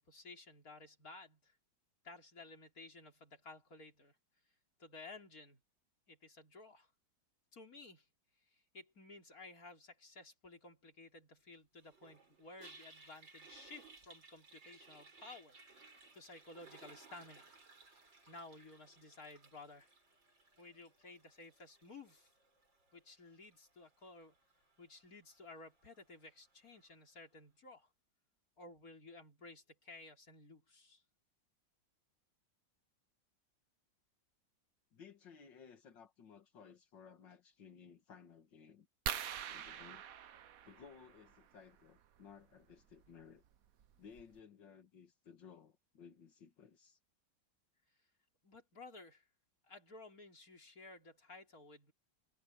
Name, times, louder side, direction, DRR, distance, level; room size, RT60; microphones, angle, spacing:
voice 1, 0.0-1.6 2.0-4.2 4.8-5.6 6.1-6.9 7.5-8.1 8.5-17.6 18.3-19.9 20.6-22.3 22.9-24.3 24.8-27.9 28.6-31.0 48.4-49.3 49.6-51.9, left 3 dB, 50° left, 4.2 m, -55 dB
Toilet flush, 11.8-27.0, right 3 dB, 80° right, 5.7 m, -62 dB
voice 2, 34.9-38.9 39.5-40.1 40.6-43.4 44.0-47.0, left 6 dB, 75° left, 2.3 m, -58 dB
sound 1, 39.1-41.4 43.0-43.2 43.8-43.9 44.2-44.4, right 9 dB, 55° right, 1.2 m, -43 dB
omnidirectional pair, 2.0 m